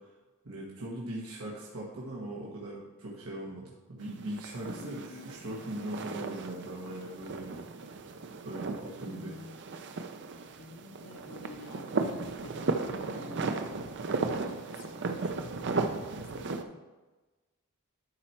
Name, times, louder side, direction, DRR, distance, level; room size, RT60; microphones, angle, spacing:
voice 1, 0.4-7.6 8.4-9.3, right 1 dB, 85° right, -5 dB, 1.5 m, -40 dB
sound 1, 4.0-16.6, right 3 dB, 55° right, 0.6 m, -36 dB
voice 2, 4.7-5.3 9.0-9.6 10.6-13.8 14.2-16.8, left 2 dB, 60° left, 4 dB, 1.0 m, -49 dB
11.5 x 4.3 x 4.5 m, 1.2 s
head